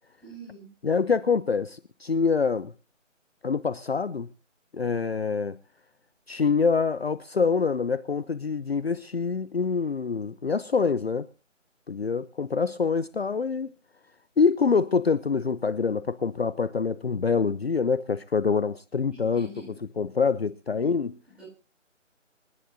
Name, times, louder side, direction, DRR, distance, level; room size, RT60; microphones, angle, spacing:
voice 1, 0.2-0.7 19.0-19.8 20.7-20.9 21.3-21.5, right 1 dB, 5° right, 6.0 m, -46 dB
voice 2, 0.8-2.7 3.4-4.3 4.7-5.6 6.3-11.3 11.9-13.7 14.4-19.5 20.0-21.1, left 5 dB, 50° left, 0.7 m, -25 dB
26.5 x 11.0 x 2.6 m
figure-of-eight pair, 165°, 38 cm